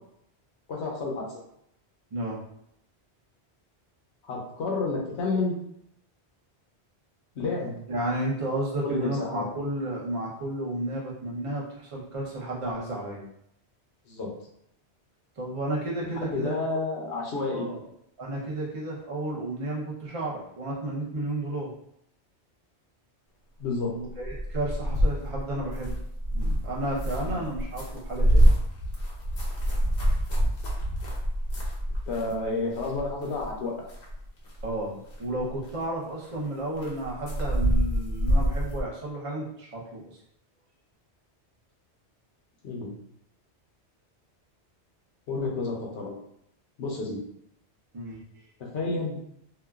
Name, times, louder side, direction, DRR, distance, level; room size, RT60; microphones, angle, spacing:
voice 1, 0.7-1.2 4.2-5.5 7.4-7.7 8.8-9.5 14.1-14.3 16.2-17.7 23.6-23.9 27.2-27.4 32.1-33.7 42.6-42.9 45.3-46.1 46.8-47.2 48.6-49.2, left 3 dB, 80° left, -1 dB, 1.0 m, -30 dB
voice 2, 2.1-2.4 7.9-13.2 15.4-16.8 17.5-17.8 18.2-21.7 24.0-25.9 26.3-28.5 34.6-40.2 47.9-48.2, right 1 dB, 35° right, -4 dB, 0.7 m, -32 dB
sound 1, 24.1-32.5 32.7-33.5 33.9-34.8 35.1-35.7 36.2-36.3 36.8-38.8, equal, 60° left, 0.9 m, -26 dB
2.9 x 2.3 x 2.3 m, 0.73 s
omnidirectional pair, 1.1 m